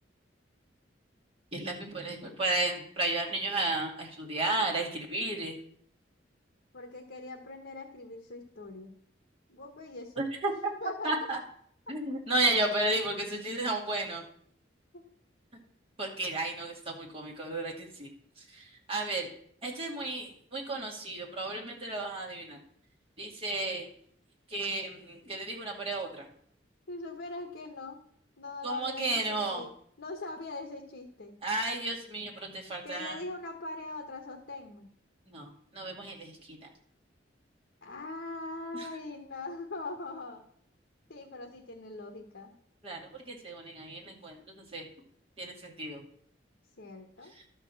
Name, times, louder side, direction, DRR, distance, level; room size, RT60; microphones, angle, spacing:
voice 1, 1.5-5.5 10.2-10.7 11.0-11.4 11.9-14.2 16.0-18.1 18.4-19.3 19.6-22.6 23.2-23.9 24.5-26.3 28.6-29.6 31.4-33.2 35.3-36.6 38.7-38.9 42.8-44.8 45.4-46.0, right 2 dB, 30° right, -2 dB, 2.3 m, -33 dB
voice 2, 6.7-8.9 9.5-10.2 10.8-11.1 11.9-12.0 14.9-15.0 26.9-28.0 28.4-29.7 30.0-31.4 32.8-34.9 37.8-40.4 41.1-42.5 46.8-47.3, left 2 dB, 75° left, 3 dB, 1.1 m, -41 dB
12.0 x 4.5 x 7.0 m, 0.64 s
head